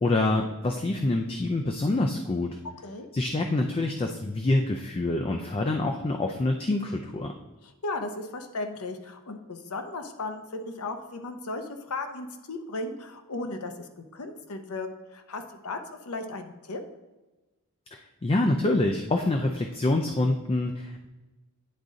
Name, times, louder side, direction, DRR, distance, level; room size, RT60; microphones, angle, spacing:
voice 1, 0.0-2.5 3.1-7.3 17.9-21.1, left 2 dB, 25° left, 3 dB, 0.4 m, -26 dB
voice 2, 7.6-16.8, left 2 dB, 75° left, 6 dB, 0.8 m, -36 dB
9.6 x 3.9 x 3.7 m, 1.1 s
head